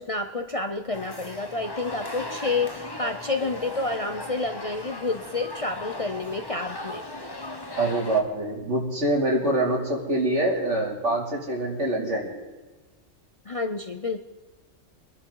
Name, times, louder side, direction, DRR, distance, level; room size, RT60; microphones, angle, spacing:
voice 1, 0.0-7.0 13.4-14.2, left 3 dB, 35° left, 6 dB, 0.6 m, -29 dB
sound 1, 0.9-8.2, left 2 dB, 20° left, 1.2 m, -37 dB
voice 2, 7.8-12.4, right 1 dB, 70° right, -2 dB, 3.2 m, -25 dB
23.5 x 11.0 x 3.9 m, 1.2 s
omnidirectional pair, 1.3 m